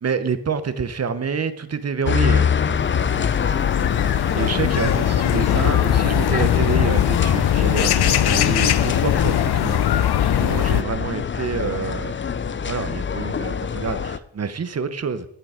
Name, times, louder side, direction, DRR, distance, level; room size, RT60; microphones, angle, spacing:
voice 1, 0.0-2.5 4.3-9.8 10.4-12.2 12.7-15.2, right 5 dB, 35° right, 12 dB, 0.9 m, -27 dB
sound 1, 2.1-10.8, left 11 dB, 65° left, 0.7 m, -21 dB
sound 2, 2.1-14.2, left 7 dB, 30° left, 0.5 m, -25 dB
15.0 x 6.7 x 5.0 m, 0.78 s
cardioid pair, 105°, 42 cm